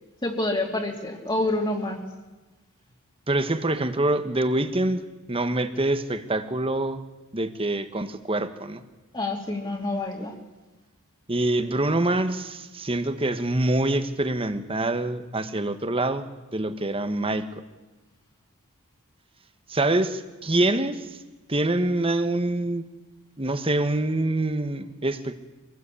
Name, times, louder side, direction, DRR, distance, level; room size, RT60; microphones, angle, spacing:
voice 1, 0.2-2.0 9.1-10.3, left 2 dB, 20° left, 0 dB, 2.7 m, -27 dB
voice 2, 3.3-7.0 7.3-8.8 11.3-16.3 16.5-17.6 19.7-21.2 21.5-22.9 23.4-25.4, right 2 dB, 25° right, 10 dB, 1.4 m, -25 dB
25.5 x 19.0 x 8.5 m, 1.2 s
head